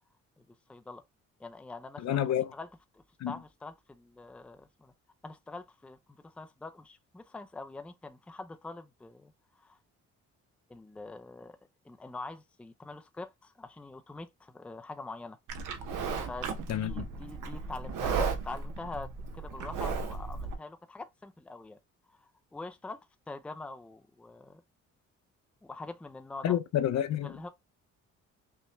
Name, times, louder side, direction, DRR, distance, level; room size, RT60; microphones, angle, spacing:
voice 1, 0.7-1.0 1.4-2.1 2.5-2.7 2.9-4.9 5.2-9.8 10.7-11.6 11.8-15.4 16.3-21.8 22.1-24.6 25.6-26.6 27.2-27.5, left 3 dB, 5° left, 0.4 m, -44 dB
voice 2, 2.0-2.5 3.2-3.3 16.7-17.0 26.4-27.5, left 10 dB, 65° left, 0.6 m, -29 dB
Livestock farm animals working animals, 15.5-20.5, right 5 dB, 80° right, 0.8 m, -35 dB
5.6 x 2.1 x 3.0 m
cardioid pair, 90°, 30 cm